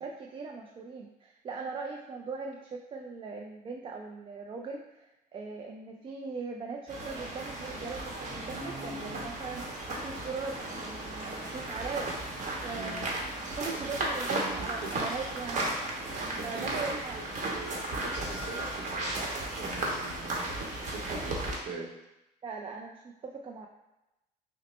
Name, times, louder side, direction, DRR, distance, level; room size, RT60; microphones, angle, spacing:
voice 1, 0.0-12.3 12.6-13.1 13.6-15.7 16.4-17.2 22.4-23.7, right 4 dB, 30° right, 1 dB, 0.3 m, -40 dB
sound 1, 6.9-21.5, right 2 dB, 45° right, 1.0 m, -35 dB
voice 2, 12.7-13.0 13.8-14.0 14.3-14.9 16.3-16.8 17.4-21.9, right 3 dB, 85° right, -1 dB, 0.8 m, -42 dB
5.9 x 2.1 x 3.0 m, 0.95 s
cardioid pair, 110°, 17 cm